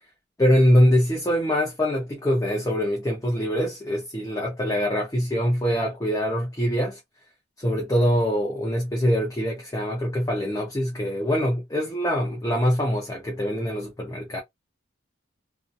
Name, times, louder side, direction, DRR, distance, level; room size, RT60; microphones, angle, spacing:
voice 1, 0.4-7.0 7.6-14.4, equal, 15° left, 0.5 m, -23 dB
2.6 x 2.2 x 2.3 m
head